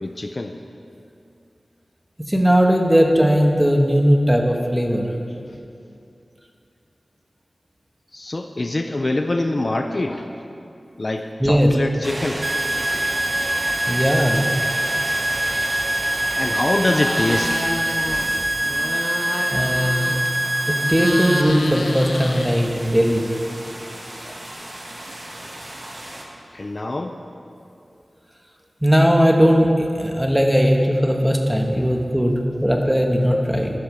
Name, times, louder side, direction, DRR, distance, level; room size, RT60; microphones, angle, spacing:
voice 1, 0.0-0.5 8.1-10.3 11.0-12.4 12.9-13.1 16.4-17.7 24.1-24.4 26.5-27.2, left 2 dB, 40° left, 5 dB, 0.6 m, -25 dB
voice 2, 2.3-5.1 11.4-11.7 13.9-14.4 19.5-20.1 20.7-23.2 28.8-33.7, equal, 5° right, 1 dB, 1.4 m, -18 dB
sound 1, 12.0-26.2, right 1 dB, 45° right, 1.9 m, -33 dB
sound 2, 12.4-21.4, right 1 dB, 30° right, 0.5 m, -24 dB
sound 3, 16.8-18.3 18.6-20.4 20.7-23.0, left 2 dB, 90° left, 0.9 m, -30 dB
12.5 x 11.5 x 5.1 m, 2.5 s
wide cardioid pair, 85°, 0 cm